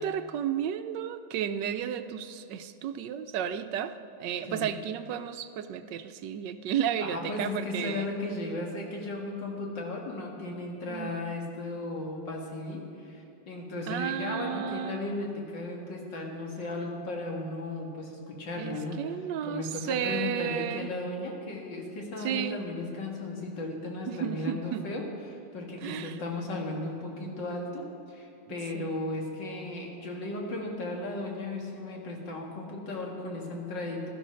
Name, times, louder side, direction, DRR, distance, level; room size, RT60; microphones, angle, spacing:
voice 1, 0.0-8.1 10.9-11.1 13.9-15.0 18.5-20.9 22.2-22.6 24.1-24.9 25.8-26.2 28.5-29.0, right 9 dB, 80° right, 11 dB, 1.3 m, -33 dB
voice 2, 7.0-19.0 19.5-34.1, left 2 dB, 85° left, 0 dB, 2.7 m, -35 dB
16.0 x 12.0 x 6.3 m, 2.7 s
omnidirectional pair, 1.9 m